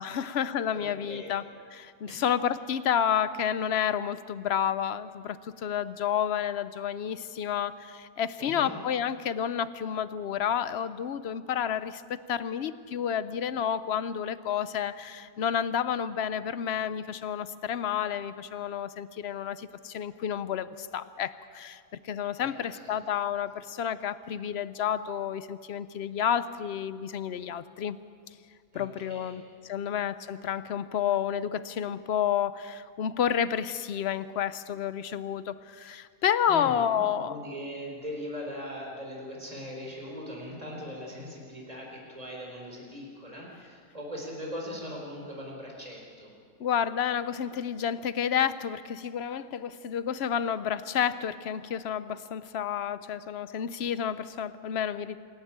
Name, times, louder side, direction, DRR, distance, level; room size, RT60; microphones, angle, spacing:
voice 1, 0.0-28.0 28.7-37.4 46.6-55.2, left 9 dB, 60° left, 14 dB, 0.7 m, -30 dB
voice 2, 0.7-1.3 2.1-2.2 8.4-8.7 22.4-23.0 28.7-29.4 29.7-30.0 36.5-46.3, equal, 20° right, -1 dB, 4.2 m, -40 dB
27.0 x 12.0 x 8.8 m, 2.2 s
omnidirectional pair, 1.7 m